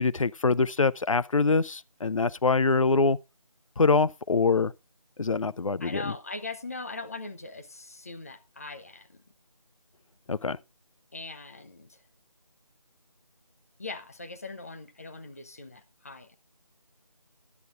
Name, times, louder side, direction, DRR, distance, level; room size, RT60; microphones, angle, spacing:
voice 1, 0.0-3.2 3.8-4.7 5.2-6.1 10.3-10.6, left 4 dB, 65° left, 0.5 m, -24 dB
voice 2, 5.8-9.2 11.1-12.0 13.8-16.4, left 3 dB, 25° left, 0.7 m, -40 dB
15.5 x 10.5 x 2.4 m
figure-of-eight pair, 165°, 18 cm